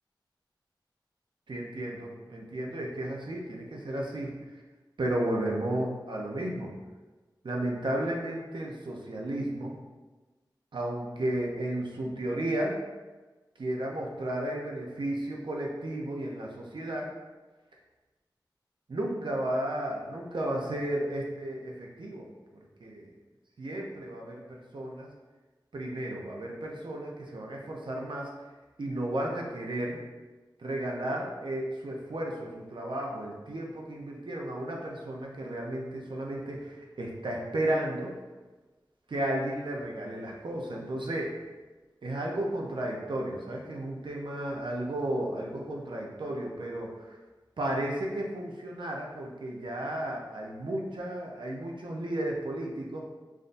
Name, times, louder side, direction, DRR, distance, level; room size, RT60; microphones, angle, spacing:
voice 1, 1.5-4.4 5.0-6.7 7.4-9.8 10.7-12.8 13.6-17.1 18.9-22.3 22.8-23.1 23.6-25.1 25.7-28.3 28.8-30.0 30.6-38.1 39.1-41.3 42.0-47.2 47.6-53.0, right 1 dB, 80° right, -1 dB, 0.7 m, -33 dB
7.2 x 2.6 x 2.6 m, 1.2 s
wide cardioid pair, 60°, 8 cm